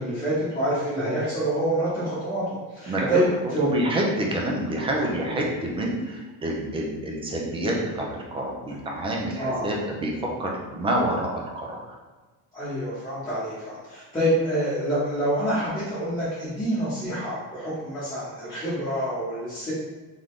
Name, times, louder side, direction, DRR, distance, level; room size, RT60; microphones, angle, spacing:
voice 1, 0.0-3.2 9.3-9.7 12.5-19.7, right 1 dB, 10° left, -12 dB, 1.1 m, -27 dB
voice 2, 3.4-11.8, right 1 dB, 15° right, -1 dB, 0.4 m, -27 dB
3.7 x 3.7 x 3.2 m, 1.3 s
cardioid pair, 170°, 41 cm